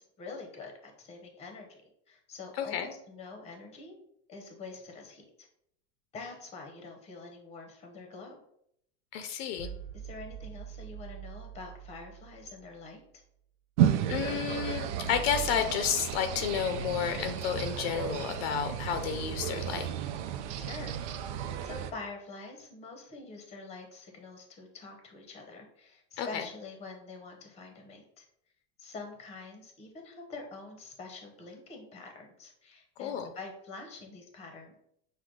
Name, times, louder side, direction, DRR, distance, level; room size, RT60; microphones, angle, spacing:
voice 1, 0.0-1.8 2.1-4.0 4.3-5.5 6.1-8.4 9.9-13.0 20.6-21.0 21.6-28.2 28.8-34.7, left 3 dB, 20° left, 3 dB, 0.7 m, -46 dB
voice 2, 2.6-2.9 9.1-9.7 14.1-19.9 26.2-26.4 33.0-33.3, left 8 dB, 60° left, 7 dB, 0.5 m, -31 dB
sound 1, 9.6-13.0, right 9 dB, 10° right, 1.2 m, -45 dB
sound 2, 13.8-21.9, right 10 dB, 80° right, 0.6 m, -33 dB
6.3 x 2.2 x 3.7 m, 0.73 s
supercardioid pair, 160°, 34 cm